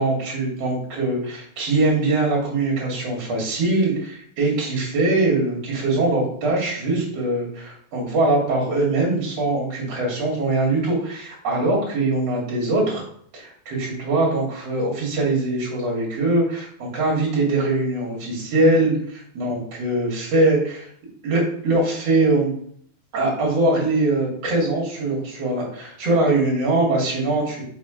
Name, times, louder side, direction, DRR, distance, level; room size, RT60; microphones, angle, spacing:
voice 1, 0.0-13.0 13.3-20.9 21.2-22.5 23.1-27.6, right 2 dB, 40° right, -3 dB, 3.1 m, -22 dB
6.6 x 4.2 x 5.1 m, 0.62 s
omnidirectional pair, 5.1 m